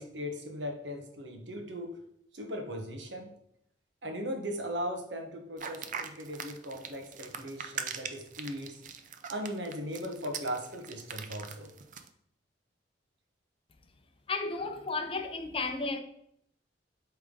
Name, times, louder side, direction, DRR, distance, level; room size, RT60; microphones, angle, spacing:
voice 1, 0.0-2.0 2.3-3.3 4.0-8.8 9.3-11.7, equal, 70° right, 1.2 m, -38 dB
sound 1, 5.6-12.1, right 7 dB, 45° right, 0.5 m, -41 dB
voice 2, 14.3-16.0, left 3 dB, 30° left, 0.6 m, -33 dB
8.1 x 3.6 x 3.8 m
head